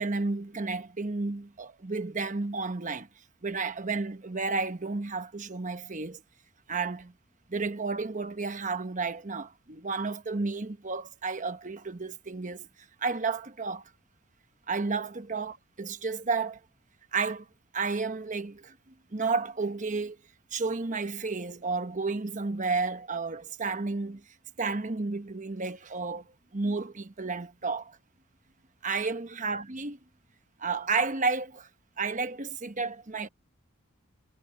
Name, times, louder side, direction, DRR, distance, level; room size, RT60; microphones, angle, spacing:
voice 1, 0.0-3.1 3.4-6.2 6.7-7.1 7.5-12.7 13.0-13.8 14.7-16.6 17.1-17.5 17.7-18.8 19.1-20.2 20.5-24.2 24.6-28.0 28.8-30.0 30.6-31.7 32.0-33.3, right 4 dB, 35° right, 1.1 m, -32 dB
head